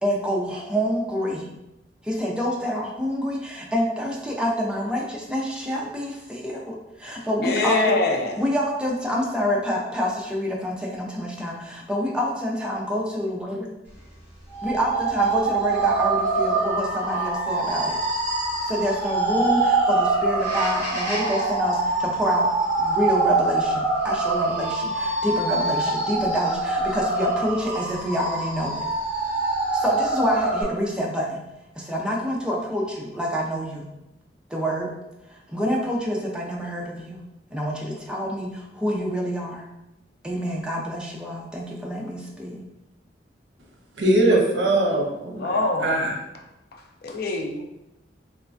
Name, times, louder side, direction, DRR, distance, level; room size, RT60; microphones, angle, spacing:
voice 1, 0.0-1.5 2.0-8.0 8.4-13.7 14.6-18.0 18.6-22.5 22.8-28.8 29.7-31.4 31.8-33.9 34.5-34.9 35.3-37.2 37.5-39.6 40.2-42.6, equal, 5° right, -2 dB, 0.4 m, -27 dB
voice 2, 7.4-8.4 45.3-46.0 46.7-47.6, left 3 dB, 60° left, 3 dB, 0.4 m, -25 dB
sound 1, 14.5-30.6, right 3 dB, 10° left, 1.0 m, -24 dB
voice 3, 44.0-46.1, right 1 dB, 70° right, 0 dB, 0.6 m, -21 dB
3.1 x 2.1 x 2.5 m, 0.91 s
head